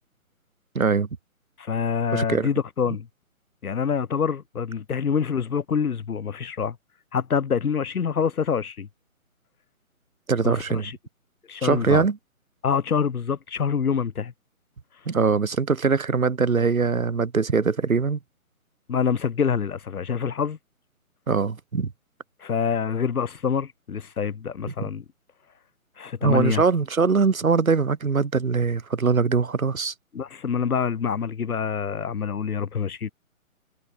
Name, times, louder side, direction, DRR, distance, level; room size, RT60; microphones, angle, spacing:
voice 1, 0.7-1.1 2.1-2.5 10.3-10.9 11.6-12.2 15.1-18.2 21.3-21.9 26.2-29.9, right 5 dB, 70° right, 2.9 m, -22 dB
voice 2, 1.6-3.1 3.6-6.8 7.1-8.9 10.4-10.6 10.8-11.0 11.5-12.0 12.6-14.3 18.9-20.6 22.4-25.0 26.0-26.6 30.1-33.1, left 6 dB, 90° left, 0.8 m, -26 dB
figure-of-eight pair, 150°, 43 cm